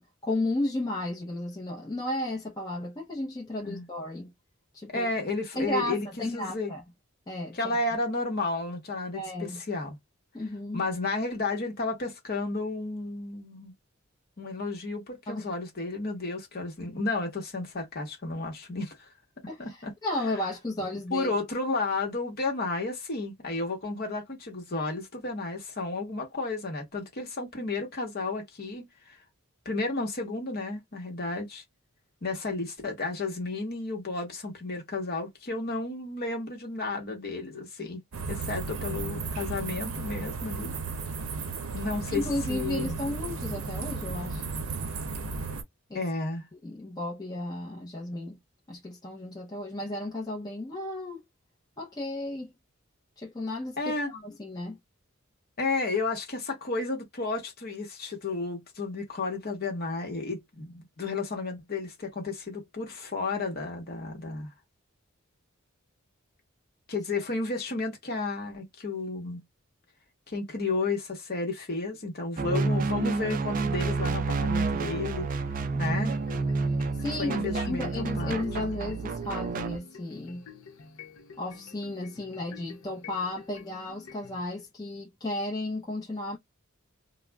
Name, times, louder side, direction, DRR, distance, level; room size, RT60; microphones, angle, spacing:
voice 1, 0.0-4.3 4.7-5.1 5.6-6.8 7.3-7.8 9.1-9.6 10.3-10.8 15.3-15.5 19.5-21.3 42.1-44.5 45.9-46.1 46.6-48.4 48.7-51.2 51.8-52.5 53.2-54.8 77.0-80.5 81.4-86.4, left 1 dB, 20° left, 0.6 m, -34 dB
voice 2, 4.9-6.7 7.5-10.0 10.7-13.7 14.4-19.1 19.6-19.9 21.1-29.1 29.6-31.6 32.2-38.0 38.3-40.7 41.7-43.0 45.9-46.4 53.8-54.1 55.6-64.5 66.9-69.4 70.3-75.3 75.7-76.1 77.2-78.4, left 3 dB, 50° left, 0.9 m, -32 dB
sound 1, 38.1-45.6, right 4 dB, 85° right, 0.6 m, -34 dB
sound 2, 72.4-79.8, right 4 dB, 40° right, 0.3 m, -29 dB
sound 3, 76.1-84.4, left 5 dB, 80° left, 0.7 m, -49 dB
2.3 x 2.0 x 3.3 m
head